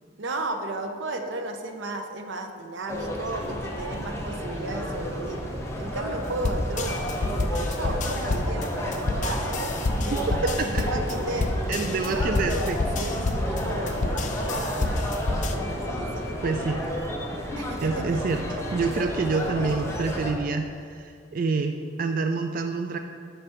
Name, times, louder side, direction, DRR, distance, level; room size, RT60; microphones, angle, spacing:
voice 1, 0.2-5.4 5.8-7.2 7.5-12.6 13.0-14.8 15.9-16.8 17.6-18.2, right 2 dB, 85° right, 5 dB, 0.7 m, -34 dB
sound 1, 2.9-20.3, equal, 15° left, 0.8 m, -31 dB
sound 2, 6.4-15.5, left 2 dB, 40° left, 0.4 m, -28 dB
voice 2, 10.0-11.0 11.7-12.8 16.4-16.8 17.8-23.0, right 4 dB, 50° right, 5 dB, 0.3 m, -27 dB
9.7 x 3.3 x 5.9 m, 2.2 s
head